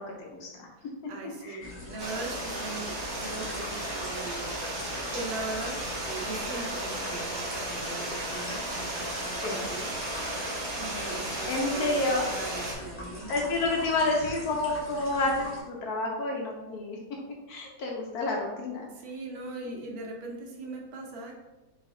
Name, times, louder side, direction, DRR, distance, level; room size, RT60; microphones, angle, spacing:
voice 1, 0.0-0.7 1.4-1.7 9.4-9.6 11.5-12.3 13.3-17.0 17.5-18.9, left 2 dB, 70° left, -1 dB, 0.9 m, -29 dB
voice 2, 0.8-10.3 10.8-13.5 13.8-14.6 18.8-21.4, right 3 dB, 70° right, 0 dB, 1.5 m, -40 dB
sound 1, 1.6-15.6, left 2 dB, 10° left, 0.5 m, -43 dB
Stream, 2.0-12.7, right 1 dB, 50° right, 1.4 m, -34 dB
4.4 x 4.0 x 2.6 m, 1.1 s
omnidirectional pair, 2.2 m